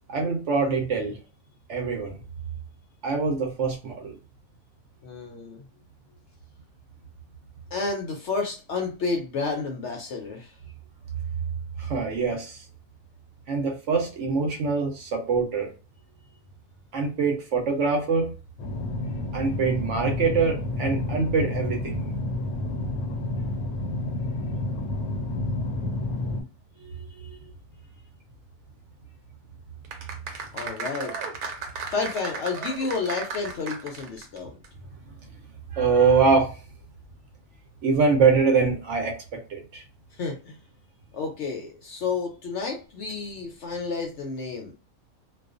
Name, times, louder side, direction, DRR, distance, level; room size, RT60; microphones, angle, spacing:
voice 1, 0.1-1.2 1.7-2.2 3.0-4.1 11.8-12.6 13.5-15.7 16.9-18.3 19.3-22.0 26.8-27.4 35.7-36.6 37.8-39.8, right 4 dB, 65° right, 2 dB, 0.8 m, -24 dB
voice 2, 5.0-5.7 7.7-10.6 30.5-31.2 31.9-34.5 40.1-40.6 41.1-44.7, left 4 dB, 65° left, 2 dB, 0.7 m, -30 dB
sound 1, 18.6-26.4, left 2 dB, 85° left, 1.1 m, -30 dB
sound 2, 29.8-34.4 34.6-34.7, right 5 dB, 85° right, 1.1 m, -35 dB
2.4 x 2.3 x 2.4 m, 0.33 s
omnidirectional pair, 1.5 m